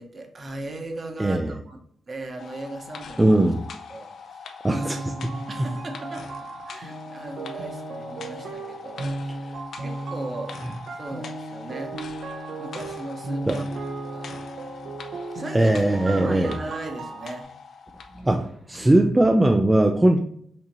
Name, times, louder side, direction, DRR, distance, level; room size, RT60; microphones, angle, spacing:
voice 1, 0.0-1.8 2.1-3.4 3.9-6.3 6.7-9.3 9.8-10.5 10.9-12.0 12.6-13.7 14.1-14.3 15.3-17.5, right 2 dB, 35° right, 4 dB, 0.9 m, -38 dB
voice 2, 1.2-1.5 3.2-3.6 4.6-5.0 13.5-13.6 15.5-16.5 18.2-20.2, right 1 dB, 15° right, 4 dB, 0.4 m, -19 dB
sound 1, 2.4-18.3 18.7-18.8, left 5 dB, 70° left, 0.6 m, -42 dB
sound 2, 4.7-17.4, right 2 dB, 80° right, 0.8 m, -35 dB
5.9 x 2.8 x 3.0 m, 0.68 s
wide cardioid pair, 130°, 0 cm